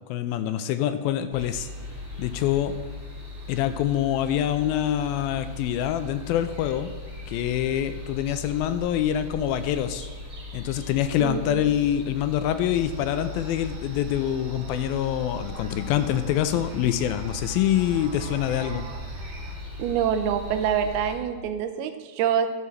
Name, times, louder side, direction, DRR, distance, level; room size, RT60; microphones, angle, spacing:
voice 1, 0.1-1.7 2.2-2.7 3.5-6.9 7.3-10.1 10.5-18.9, left 11 dB, 80° left, 11 dB, 2.2 m, -25 dB
sound 1, 1.3-21.2, left 2 dB, 40° right, 3.0 m, -39 dB
voice 2, 11.2-11.6 19.8-22.5, right 8 dB, 85° right, 9 dB, 2.6 m, -26 dB
sound 2, 12.7-19.6, right 7 dB, 70° right, 2.4 m, -42 dB
11.0 x 5.8 x 6.3 m, 1.4 s
omnidirectional pair, 4.4 m